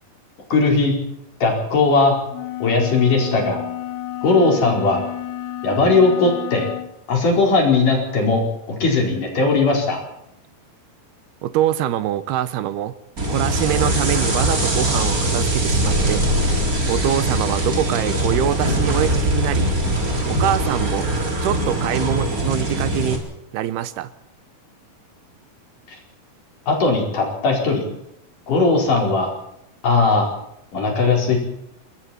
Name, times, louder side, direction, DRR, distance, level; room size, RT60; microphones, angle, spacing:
voice 1, 0.5-1.0 1.4-2.1 2.6-3.6 4.2-5.0 5.6-6.7 7.1-8.4 8.7-10.0 25.9-26.0 26.7-27.8 28.5-29.3 29.8-30.3 30.7-31.4, left 3 dB, 55° left, 0 dB, 6.2 m, -18 dB
sound 1, 2.3-6.9, left 13 dB, 90° left, 3.1 m, -31 dB
voice 2, 11.4-12.9 13.3-16.2 16.9-19.7 20.3-21.1 21.4-23.2 23.5-24.1, right 12 dB, 85° right, 14 dB, 3.0 m, -24 dB
sound 2, 13.2-23.2, right 1 dB, 20° right, 3.9 m, -21 dB
27.0 x 22.5 x 4.4 m, 0.78 s
omnidirectional pair, 4.5 m